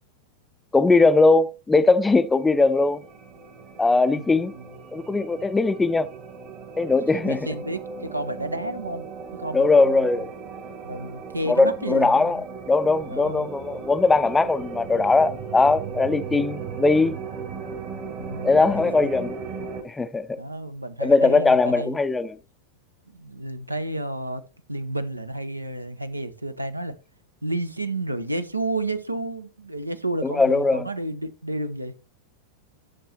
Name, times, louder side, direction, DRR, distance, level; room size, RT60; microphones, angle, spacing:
voice 1, 0.7-3.0 3.8-4.5 4.9-6.1 6.8-7.4 9.5-10.3 11.5-17.2 18.4-19.4 19.8-20.4 21.0-22.4 30.2-30.9, left 3 dB, 10° left, 0.4 m, -20 dB
sound 1, 2.1-19.8, right 5 dB, 40° right, 1.7 m, -37 dB
voice 2, 7.2-9.1 9.3-10.2 10.8-12.4 13.1-13.5 18.2-18.9 20.4-22.0 23.1-24.4 24.7-27.0 27.4-31.9, right 1 dB, 85° right, 0.7 m, -31 dB
11.0 x 6.6 x 2.8 m
figure-of-eight pair, 90°, 0 cm